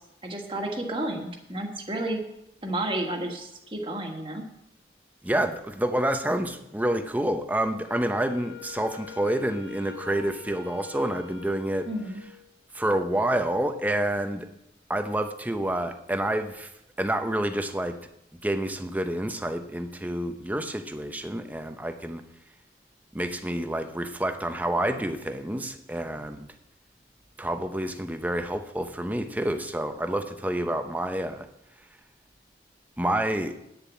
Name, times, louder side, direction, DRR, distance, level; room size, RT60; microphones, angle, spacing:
voice 1, 0.2-2.2 2.6-4.4 11.9-12.2, right 1 dB, 30° right, 2 dB, 1.6 m, -31 dB
voice 2, 5.2-11.9 12.7-14.5 14.9-16.7 17.0-17.9 18.4-22.2 23.1-26.5 27.4-31.5 33.0-33.5, right 1 dB, 10° right, 7 dB, 0.7 m, -28 dB
Wind instrument woodwind instrument, 7.8-12.5, left 6 dB, 65° left, 2.3 m, -45 dB
9.6 x 7.0 x 8.3 m, 0.84 s
head